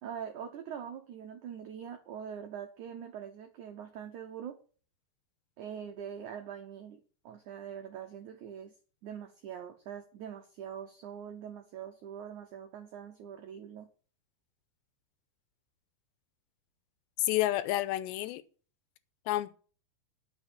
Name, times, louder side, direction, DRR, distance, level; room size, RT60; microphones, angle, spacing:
voice 1, 0.0-4.6 5.6-8.7 9.0-13.9, right 8 dB, 85° right, 1.7 m, -43 dB
voice 2, 17.2-18.4 19.3-19.5, left 15 dB, 85° left, 2.9 m, -29 dB
10.5 x 6.3 x 8.2 m
omnidirectional pair, 5.0 m